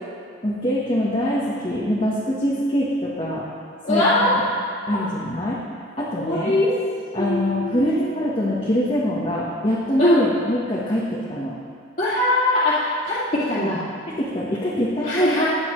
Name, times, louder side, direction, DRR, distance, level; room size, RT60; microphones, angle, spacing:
voice 1, 0.4-3.5 3.9-4.0 4.3-4.4 4.9-5.6 6.0-6.5 7.1-11.6 14.1-15.4, equal, 30° left, -6 dB, 1.2 m, -24 dB
voice 2, 3.8-4.4 4.9-5.0 6.2-6.7 7.2-8.1 10.0-10.2 12.0-13.2 13.5-13.8 15.0-15.4, left 1 dB, 45° left, -13 dB, 2.3 m, -21 dB
16.0 x 9.7 x 3.2 m, 2.2 s
head